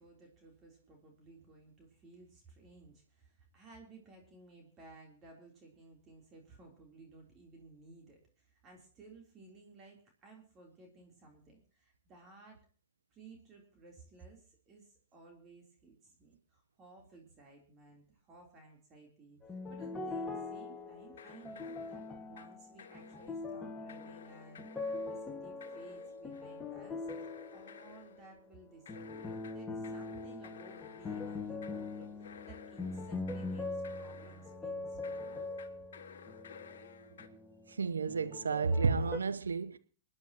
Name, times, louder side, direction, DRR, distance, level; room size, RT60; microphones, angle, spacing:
voice 1, 0.0-12.6 13.1-24.7 25.0-35.4, right 3 dB, 30° right, 3.5 m, -57 dB
sound 1, 19.4-28.4 28.9-37.8 38.1-39.2, left 3 dB, 15° left, 1.8 m, -42 dB
sound 2, 21.2-22.5 22.8-23.5 23.9-25.2 25.6-26.6 27.1-28.2 28.9-34.5 35.0-37.3, left 7 dB, 70° left, 1.4 m, -54 dB
voice 2, 37.8-39.8, right 4 dB, 80° right, 0.8 m, -31 dB
27.5 x 9.9 x 3.0 m
figure-of-eight pair, 105°, 0 cm